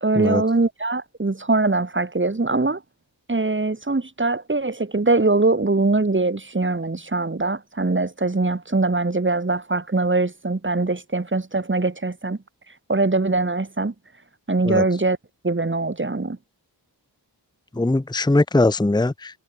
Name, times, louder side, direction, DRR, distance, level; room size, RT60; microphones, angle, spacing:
voice 1, 0.0-2.8 3.3-12.4 12.9-13.9 14.5-15.2 15.4-16.4, right 3 dB, 25° right, 1.9 m, -22 dB
voice 2, 17.7-19.4, left 2 dB, 10° left, 0.8 m, -20 dB
wide cardioid pair, 80°, 44 cm